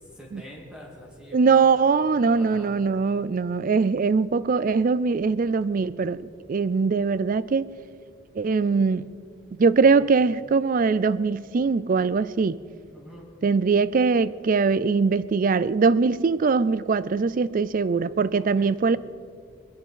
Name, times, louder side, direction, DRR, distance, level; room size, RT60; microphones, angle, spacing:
voice 1, 0.1-1.9 2.1-2.7 9.8-10.1 12.9-13.3 18.3-18.8, equal, 5° right, 2.5 m, -46 dB
voice 2, 1.3-7.7 8.3-9.1 9.6-12.6 13.4-19.0, right 4 dB, 40° right, 0.4 m, -22 dB
21.5 x 10.5 x 5.6 m
head